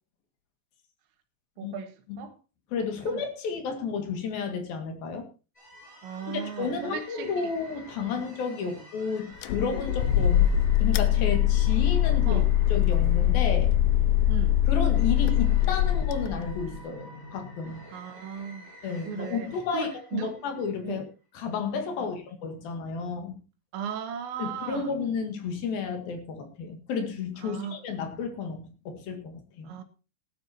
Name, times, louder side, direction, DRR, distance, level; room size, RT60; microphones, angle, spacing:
voice 1, 1.6-2.4 3.1-3.2 6.0-7.5 8.2-8.3 8.6-8.8 12.3-12.5 14.3-14.7 17.9-18.7 19.1-20.4 20.8-21.1 22.0-22.2 23.7-25.0 27.4-27.8 29.6-29.8, right 7 dB, 75° right, 3.9 m, -37 dB
voice 2, 2.7-5.3 6.3-12.4 12.7-13.8 14.7-17.9 18.8-21.1 21.3-23.4 24.4-29.7, left 5 dB, 60° left, 3.5 m, -32 dB
sound 1, 5.5-20.7, equal, 10° left, 7.7 m, -44 dB
sound 2, 9.4-16.8, left 13 dB, 80° left, 3.0 m, -23 dB
18.0 x 12.0 x 2.9 m
omnidirectional pair, 5.3 m